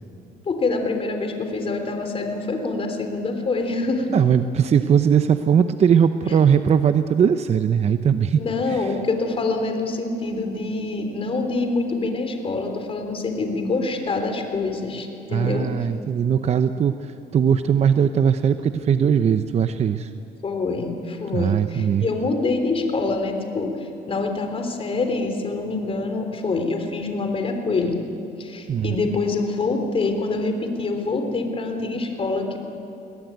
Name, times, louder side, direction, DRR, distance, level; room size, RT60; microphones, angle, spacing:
voice 1, 0.5-4.2 8.3-15.7 20.4-28.0 28.4-32.6, left 3 dB, 35° left, 5 dB, 3.5 m, -25 dB
voice 2, 4.1-8.4 8.7-8.9 15.3-20.1 21.3-22.1 28.7-29.0, right 8 dB, 40° right, 10 dB, 0.7 m, -20 dB
22.5 x 18.0 x 9.3 m, 2.9 s
cardioid pair, 110°, 17 cm